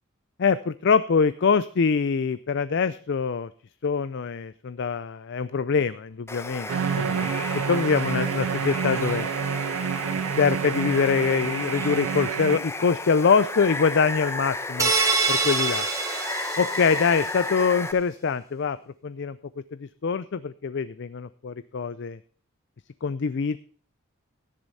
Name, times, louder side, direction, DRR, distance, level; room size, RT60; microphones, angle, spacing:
voice 1, 0.4-3.5 3.8-7.3 7.7-9.3 10.4-14.9 15.3-15.9 16.6-18.8 19.0-19.4 19.8-22.2 23.0-23.6, left 5 dB, 55° left, 15 dB, 0.4 m, -24 dB
Water, 6.3-17.9, left 2 dB, 10° left, 0.9 m, -34 dB
sound 1, 6.7-12.6, right 7 dB, 70° right, 0.4 m, -28 dB
sound 2, 14.8-17.3, right 4 dB, 15° right, 2.0 m, -25 dB
13.0 x 10.5 x 4.1 m, 0.43 s
head